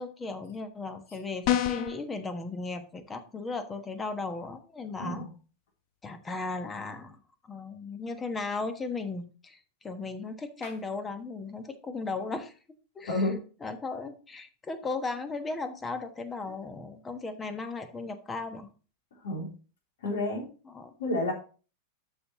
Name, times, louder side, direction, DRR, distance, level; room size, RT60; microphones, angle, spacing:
voice 1, 0.0-5.3 6.0-7.2 7.4-12.5 12.9-13.3 13.6-18.7 20.6-20.9, left 3 dB, 15° left, 10 dB, 1.2 m, -36 dB
sound 1, 1.4-2.0, left 11 dB, 45° left, 0.7 m, -26 dB
voice 2, 13.1-13.4 16.5-16.6 19.2-19.5 20.0-20.5 21.0-21.3, left 2 dB, 60° left, 1 dB, 3.3 m, -30 dB
12.5 x 5.6 x 2.9 m, 0.35 s
figure-of-eight pair, 90°, 0 cm